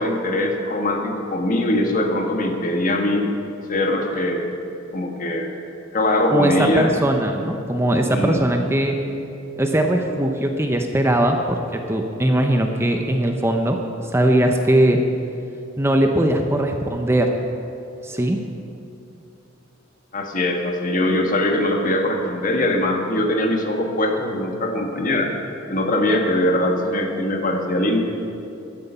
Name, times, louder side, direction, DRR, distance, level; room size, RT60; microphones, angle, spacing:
voice 1, 0.0-3.3 3.7-4.5 4.9-5.5 5.9-6.9 8.1-8.5 20.1-25.3 25.7-28.0, left 1 dB, 45° left, 3 dB, 1.5 m, -21 dB
voice 2, 6.3-9.0 9.6-13.8 14.1-15.0 15.8-17.3 18.0-18.4, right 1 dB, 15° right, 4 dB, 0.7 m, -20 dB
14.5 x 10.5 x 5.6 m, 2.8 s
head